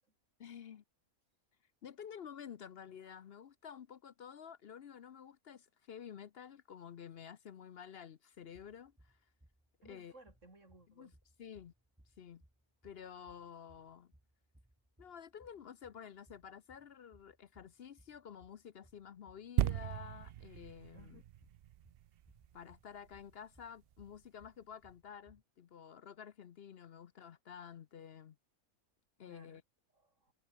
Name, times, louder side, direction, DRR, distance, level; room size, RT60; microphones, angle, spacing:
voice 1, 0.4-0.8 1.8-9.2 9.8-10.1 11.0-11.1 11.4-11.7 12.2-12.4 12.8-14.1 15.0-21.2 22.5-28.4 29.2-29.6, left 8 dB, 55° left, 0.8 m, -51 dB
sound 1, 8.3-25.4, right 1 dB, 5° right, 2.3 m, -68 dB
voice 2, 9.8-11.1 20.9-21.2 29.2-29.6 29.9-30.3, right 2 dB, 55° right, 6.1 m, -60 dB
sound 2, 19.6-23.2 23.8-23.9, right 12 dB, 80° right, 0.5 m, -37 dB
omnidirectional pair, 1.5 m